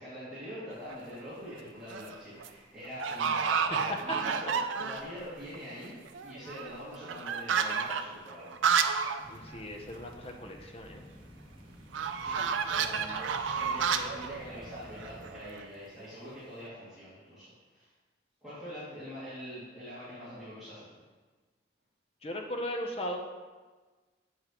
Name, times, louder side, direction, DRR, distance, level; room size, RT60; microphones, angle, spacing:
voice 1, 0.0-9.5 12.2-17.9 18.4-20.9, equal, ahead, -16 dB, 2.3 m, -44 dB
sound 1, 0.7-1.1 1.7-2.1 2.4-2.5 3.0-5.2 5.5-5.6 5.8-9.2 9.5-9.6 9.9-10.0 11.9-15.7, right 6 dB, 85° right, 0.4 m, -31 dB
sound 2, 9.2-15.4, equal, 30° right, 1.4 m, -51 dB
voice 2, 9.3-11.0 22.2-23.2, left 1 dB, 30° left, 2 dB, 0.7 m, -38 dB
7.3 x 6.7 x 3.0 m, 1.3 s
head